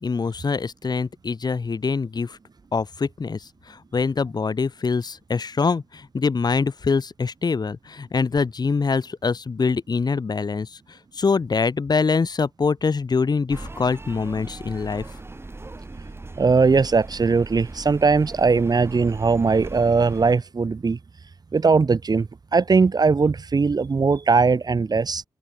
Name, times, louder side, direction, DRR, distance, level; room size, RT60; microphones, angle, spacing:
voice 1, 0.0-2.4 2.7-10.8 11.1-15.1, left 4 dB, 50° left, 2.0 m, -24 dB
sound 1, 13.5-20.3, right 2 dB, 25° right, 2.0 m, -39 dB
voice 2, 16.4-21.0 21.5-25.2, right 4 dB, 45° right, 1.9 m, -20 dB
open air
cardioid pair, 50°, 9 cm